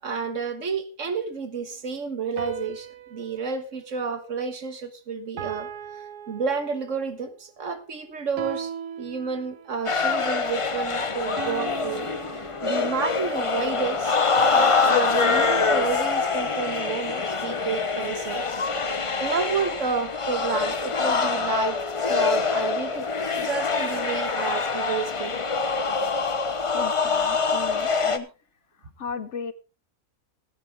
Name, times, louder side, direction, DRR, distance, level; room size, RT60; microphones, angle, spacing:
voice 1, 0.0-5.7 6.3-8.7 9.0-12.1 12.3-14.2 14.4-18.4 19.0-21.8 22.1-23.1 23.4-25.3, right 5 dB, 55° right, 9 dB, 1.6 m, -30 dB
sound 1, 2.4-4.9 5.4-7.1 8.4-9.9 11.4-13.2 14.4-16.7, right 8 dB, 90° right, 1.5 m, -39 dB
sound 2, 9.9-28.2, left 4 dB, 30° left, 0.6 m, -25 dB
voice 2, 26.7-28.3 28.8-29.5, left 6 dB, 60° left, 13 dB, 0.9 m, -36 dB
15.5 x 9.6 x 3.5 m, 0.31 s
omnidirectional pair, 1.6 m